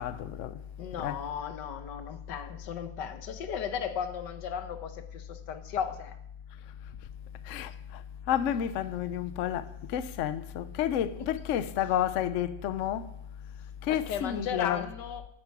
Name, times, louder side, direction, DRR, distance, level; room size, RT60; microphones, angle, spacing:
voice 1, 0.0-0.6 1.0-1.2 7.4-13.1 13.8-14.9, left 10 dB, 65° left, 0.8 m, -31 dB
voice 2, 0.8-6.2 11.1-11.2 13.9-15.2, left 8 dB, 90° left, 1.7 m, -35 dB
15.0 x 9.8 x 4.7 m
omnidirectional pair, 1.8 m